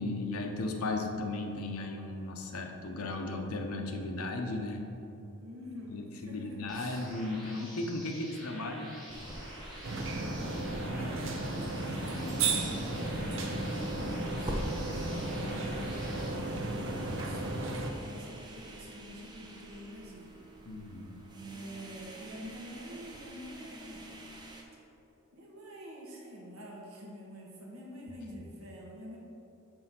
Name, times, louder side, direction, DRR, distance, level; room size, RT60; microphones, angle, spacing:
voice 1, 0.0-4.9 5.9-9.0 20.6-21.3, left 2 dB, 85° left, 3 dB, 0.8 m, -36 dB
voice 2, 5.4-7.0 10.1-20.4 21.3-24.0 25.3-29.2, equal, 80° right, -3 dB, 1.5 m, -47 dB
sound 1, 6.7-16.3, equal, ahead, 1.6 m, -49 dB
sound 2, 9.1-24.6, right 1 dB, 20° right, 0.6 m, -45 dB
sound 3, 9.8-17.9, right 2 dB, 60° right, 0.7 m, -34 dB
6.2 x 4.4 x 5.9 m, 2.9 s
head